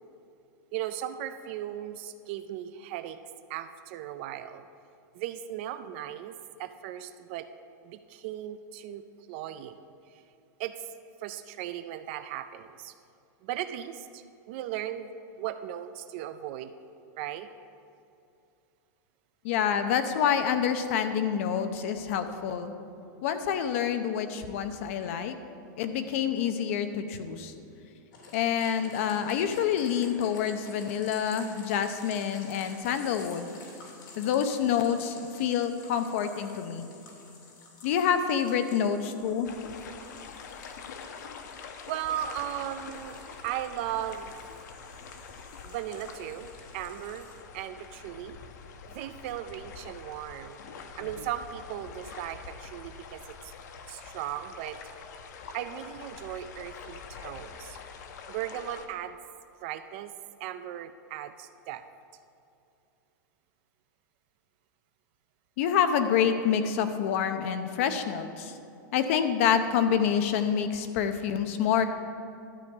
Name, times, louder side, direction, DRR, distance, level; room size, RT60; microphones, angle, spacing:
voice 1, 0.7-3.2 3.5-4.7 5.1-7.5 7.8-9.9 10.6-10.9 11.2-12.9 13.4-15.1 15.4-16.7 17.2-17.5 41.9-44.4 45.6-47.3 47.5-48.4 48.9-50.6 51.0-53.5 53.9-54.8 55.5-57.8 58.3-59.2 59.6-60.1 60.4-61.8, right 11 dB, 35° right, 11 dB, 0.4 m, -37 dB
voice 2, 19.4-22.8 23.2-25.4 25.8-27.5 28.3-33.5 34.2-36.9 37.8-39.5 65.6-68.5 68.9-71.9, left 8 dB, 45° left, 9 dB, 0.7 m, -27 dB
sound 1, 28.1-47.4, left 3 dB, 85° left, 2.7 m, -51 dB
sound 2, 39.4-58.9, left 5 dB, 60° left, 1.0 m, -45 dB
12.5 x 5.1 x 8.1 m, 2.6 s
supercardioid pair, 175°, 10 cm